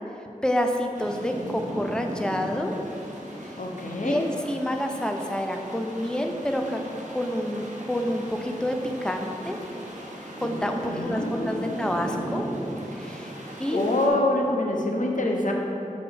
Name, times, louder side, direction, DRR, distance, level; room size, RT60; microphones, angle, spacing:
voice 1, 0.4-2.7 3.4-3.6 4.0-6.8 7.1-8.8 9.0-9.6 10.2-12.4 12.9-13.3 13.6-13.9, equal, 5° left, 3 dB, 0.6 m, -28 dB
sound 1, 0.9-14.1, right 1 dB, 60° right, 1.0 m, -37 dB
voice 2, 3.6-4.3 10.8-11.8 13.3-15.5, left 1 dB, 70° left, 0 dB, 0.8 m, -26 dB
5.5 x 4.2 x 5.6 m, 2.8 s
wide cardioid pair, 45°, 14 cm